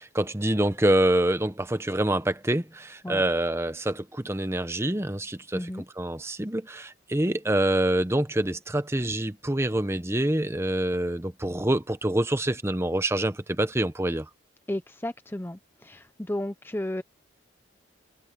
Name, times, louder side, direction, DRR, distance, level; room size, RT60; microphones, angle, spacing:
voice 1, 0.0-5.7 6.0-14.3, right 1 dB, 15° right, 0.9 m, -26 dB
voice 2, 5.5-5.8 14.7-17.0, left 1 dB, 10° left, 0.6 m, -33 dB
head